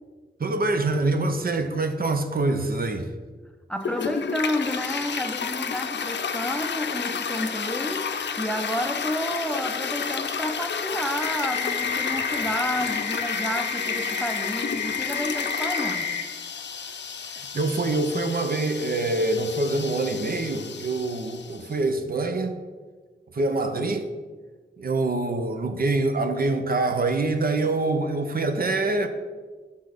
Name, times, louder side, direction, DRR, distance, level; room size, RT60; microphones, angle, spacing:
voice 1, 0.4-3.1 17.3-22.6 23.3-24.1 24.8-29.1, right 2 dB, 55° right, 0.7 m, -25 dB
voice 2, 3.7-8.1 8.4-16.1, left 1 dB, 5° left, 0.6 m, -30 dB
Toilet flush, 3.8-21.7, left 6 dB, 75° left, 0.5 m, -31 dB
sound 1, 11.2-16.2, left 6 dB, 45° left, 1.0 m, -30 dB
6.1 x 5.5 x 4.9 m
wide cardioid pair, 90°, 19 cm